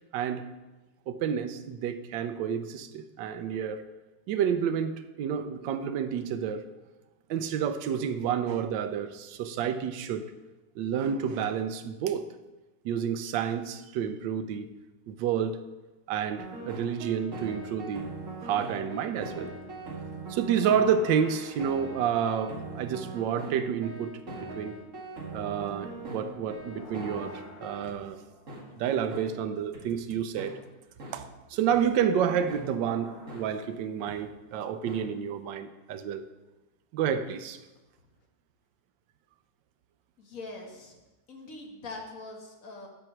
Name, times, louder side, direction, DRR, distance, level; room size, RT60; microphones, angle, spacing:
voice 1, 0.1-0.5 1.1-3.8 4.3-6.6 7.3-10.3 10.8-12.3 12.8-14.7 15.1-15.6 16.1-18.1 18.4-19.5 20.3-24.8 25.3-28.2 28.8-30.6 31.1-36.2 36.9-37.6, right 8 dB, 80° right, 1.3 m, -29 dB
sound 1, 16.4-27.9 28.5-28.6 29.1-29.2 29.7-29.8 30.4-30.5 31.0-31.1 31.7-31.8 32.5-32.6 33.3-33.4 34.1-34.2 34.9-35.0, right 3 dB, 45° right, 2.2 m, -41 dB
sound 2, 19.7-24.1 24.4-24.5 25.8-29.8 31.9-34.7, equal, 75° left, 3.1 m, -51 dB
voice 2, 40.2-40.9 41.3-42.9, left 2 dB, 50° left, 1.7 m, -42 dB
11.0 x 4.5 x 6.0 m
omnidirectional pair, 2.0 m